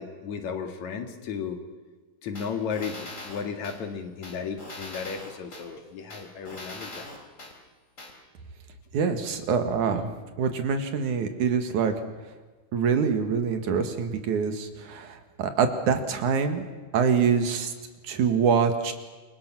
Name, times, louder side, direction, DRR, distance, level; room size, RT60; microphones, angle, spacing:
voice 1, 0.0-1.6 2.2-7.1, left 6 dB, 70° left, 5 dB, 3.3 m, -34 dB
sound 1, 2.4-3.8 4.2-5.6 6.1-7.5 8.0-8.1, left 2 dB, 25° left, 4.4 m, -41 dB
voice 2, 8.9-10.1 10.4-11.9 12.7-16.6 16.9-17.7 18.0-18.9, right 6 dB, 80° right, 7 dB, 3.3 m, -25 dB
28.0 x 23.0 x 6.1 m, 1.3 s
omnidirectional pair, 3.4 m